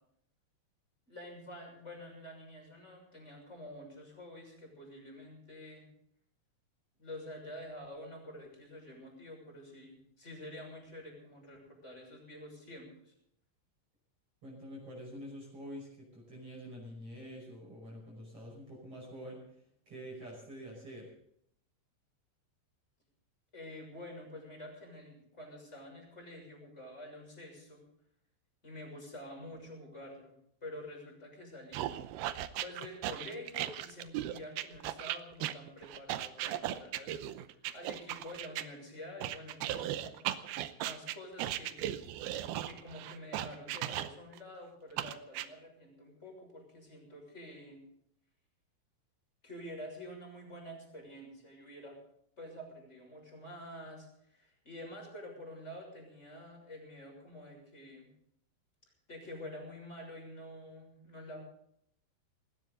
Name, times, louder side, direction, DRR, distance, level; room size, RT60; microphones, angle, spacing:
voice 1, 1.1-5.8 7.0-13.1 23.5-27.8 28.6-31.9 32.6-40.1 40.8-41.8 42.6-47.8 49.4-52.0 52.4-58.1 59.1-61.4, left 1 dB, 15° left, 1 dB, 6.3 m, -48 dB
voice 2, 14.4-21.1, equal, 30° right, -3 dB, 6.4 m, -47 dB
sound 1, 31.7-38.7 39.2-44.4 45.0-45.5, right 13 dB, 85° right, 2.1 m, -37 dB
20.0 x 18.0 x 4.0 m, 0.72 s
omnidirectional pair, 5.5 m